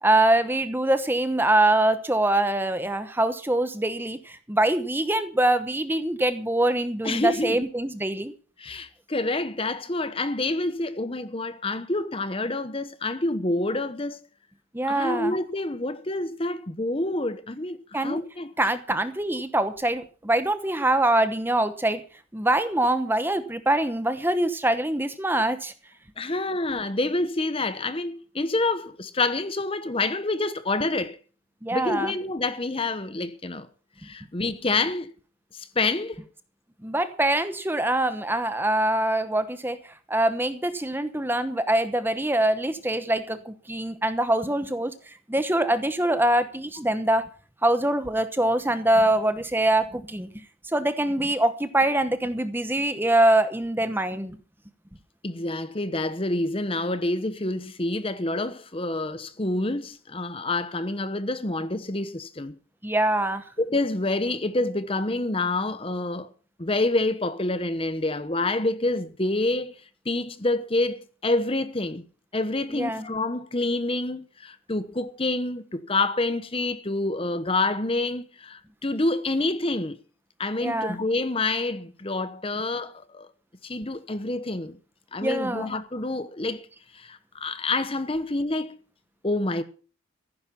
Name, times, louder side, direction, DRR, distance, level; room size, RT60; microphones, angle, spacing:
voice 1, 0.0-8.3 14.7-15.3 17.9-18.2 18.6-22.0 22.3-25.7 31.6-32.1 36.8-47.3 47.6-54.4 62.8-63.4 72.7-73.0 80.6-81.0 85.2-85.7, right 1 dB, 10° right, 0.9 m, -24 dB
voice 2, 7.0-7.6 8.6-14.2 14.9-18.5 26.2-31.2 31.7-33.7 34.0-35.1 35.5-36.2 55.2-62.6 63.6-66.3 66.6-69.7 70.0-72.0 72.3-80.0 80.4-83.3 83.6-84.8 85.1-86.7 86.9-88.8 89.2-89.6, left 2 dB, 25° left, 1.0 m, -27 dB
15.0 x 11.0 x 5.8 m
head